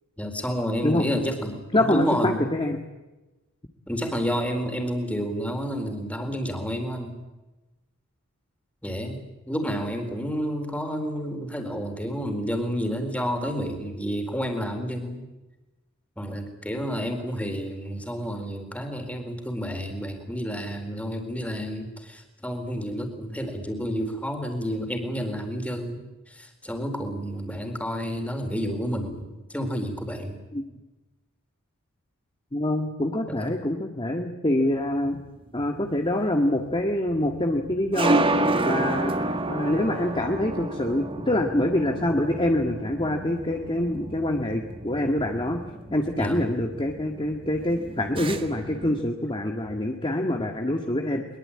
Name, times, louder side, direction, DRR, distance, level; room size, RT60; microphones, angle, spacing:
voice 1, 0.2-2.5 3.9-7.2 8.8-15.3 16.2-30.4 33.3-33.5 46.2-46.4, equal, 5° left, 5 dB, 4.1 m, -30 dB
voice 2, 1.7-2.8 30.5-30.7 32.5-35.2 35.5-38.3 38.6-45.6 45.9-51.3, left 1 dB, 25° left, 3 dB, 1.7 m, -25 dB
sound 1, 35.0-49.0, right 2 dB, 25° right, 1.8 m, -30 dB
23.0 x 22.5 x 8.8 m, 1.1 s
head